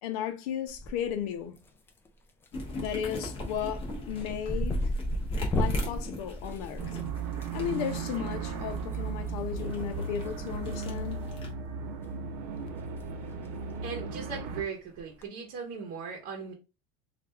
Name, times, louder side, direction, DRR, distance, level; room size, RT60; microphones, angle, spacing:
voice 1, 0.0-1.6 2.8-4.8 5.5-6.9 7.5-11.3, left 9 dB, 80° left, 0.7 m, -34 dB
sound 1, 0.7-1.2 1.6-2.1 2.4-2.7 3.0-7.5 8.8-9.0 10.2-11.0 11.3-11.5 12.0-12.1 12.4-12.5 12.8-13.0 13.3-13.4 15.0-15.2, equal, 10° left, 0.3 m, -33 dB
sound 2, 2.5-11.5, left 1 dB, 30° left, 1.0 m, -42 dB
sound 3, 6.8-14.6, right 5 dB, 90° right, 0.8 m, -36 dB
voice 2, 13.8-16.5, right 6 dB, 50° right, 0.8 m, -38 dB
3.4 x 2.4 x 3.2 m
cardioid pair, 165°, 19 cm